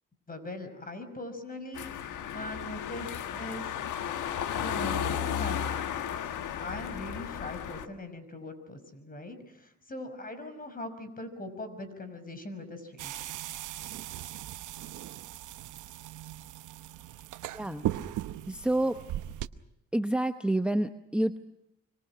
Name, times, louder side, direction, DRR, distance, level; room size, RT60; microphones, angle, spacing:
voice 1, 0.3-3.9 4.5-5.8 6.1-6.3 6.6-13.2, left 2 dB, 30° left, 10 dB, 5.7 m, -41 dB
sound 1, 1.7-7.9, left 9 dB, 80° left, 1.5 m, -34 dB
sound 2, 13.0-19.5, right 13 dB, 80° right, 1.0 m, -38 dB
voice 2, 17.5-17.9 18.5-19.0 19.9-21.4, right 1 dB, 5° right, 8 dB, 0.9 m, -28 dB
25.5 x 25.5 x 6.1 m, 0.86 s
cardioid pair, 90°, 30 cm